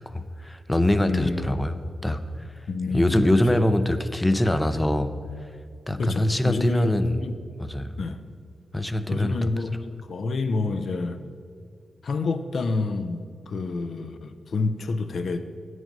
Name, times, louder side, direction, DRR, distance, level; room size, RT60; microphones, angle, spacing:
voice 1, 0.1-2.5 2.9-5.1 5.9-7.2 7.6-8.0 8.7-9.5, left 1 dB, 15° left, 11 dB, 0.5 m, -24 dB
voice 2, 1.1-1.6 2.7-3.6 6.0-7.4 8.0-8.2 9.1-11.2 12.0-15.5, left 3 dB, 65° left, 9 dB, 0.5 m, -28 dB
8.8 x 6.3 x 5.3 m, 2.2 s
cardioid pair, 75°, 0 cm